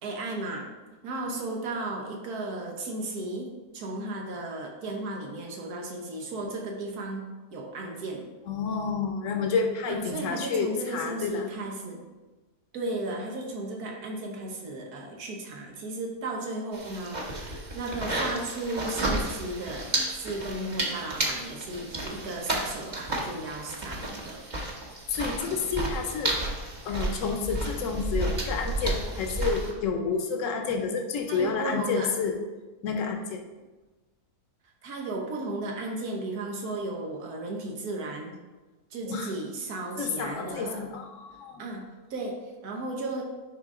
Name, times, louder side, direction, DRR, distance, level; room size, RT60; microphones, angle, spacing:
voice 1, 0.0-0.7 1.0-7.2 7.5-8.2 9.9-12.0 12.7-24.4 31.3-32.1 34.8-38.3 38.9-40.8 41.6-41.8 42.1-43.2, right 2 dB, 90° right, 0 dB, 1.5 m, -35 dB
voice 2, 8.5-11.5 25.1-26.4 26.8-32.3 32.8-33.4 39.1-39.3 40.0-41.6, left 5 dB, 65° left, 4 dB, 1.2 m, -29 dB
sound 1, 16.7-29.7, right 1 dB, 35° right, 1.1 m, -32 dB
10.5 x 3.8 x 3.7 m, 1.2 s
omnidirectional pair, 1.6 m